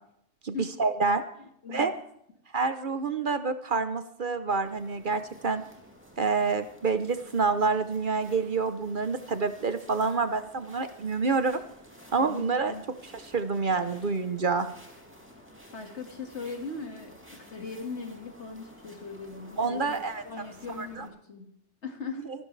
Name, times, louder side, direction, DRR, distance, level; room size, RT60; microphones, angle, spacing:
voice 1, 0.4-1.2 1.7-1.9 2.5-5.6 6.2-11.6 12.1-12.7 13.3-14.7 19.6-20.2 20.8-21.0, right 4 dB, 50° right, 10 dB, 1.0 m, -27 dB
voice 2, 1.4-1.9 12.2-12.8 15.7-20.0 20.2-21.6 21.8-22.3, left 4 dB, 70° left, 4 dB, 2.3 m, -40 dB
sound 1, 4.6-21.1, equal, 10° right, 2.7 m, -52 dB
24.5 x 12.0 x 3.3 m, 0.72 s
omnidirectional pair, 1.2 m